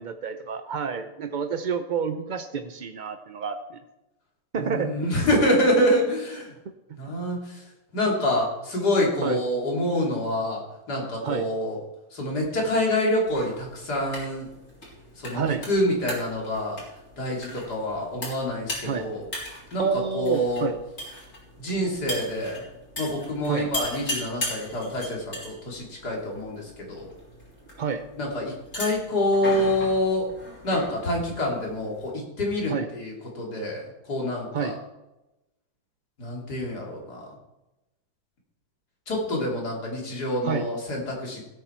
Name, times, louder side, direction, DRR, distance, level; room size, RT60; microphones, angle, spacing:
voice 1, 0.0-3.8 4.5-5.3 9.2-9.4 11.2-11.4 15.3-15.6 18.9-19.1 19.8-20.8 23.5-23.7 27.8-28.0 32.7-32.9 34.5-34.8 40.4-40.7, right 6 dB, 65° right, 8 dB, 0.4 m, -29 dB
voice 2, 4.6-6.5 7.0-7.7 7.9-10.6 10.9-11.8 12.1-14.5 15.2-16.8 17.2-19.3 19.7-19.9 20.1-20.7 21.6-22.6 23.0-27.1 28.2-30.3 30.6-34.7 36.2-37.3 39.1-41.4, left 1 dB, 80° left, -2 dB, 3.5 m, -26 dB
sound 1, 13.2-32.1, equal, 50° left, 4.1 m, -39 dB
17.0 x 8.2 x 4.5 m, 0.97 s
omnidirectional pair, 1.7 m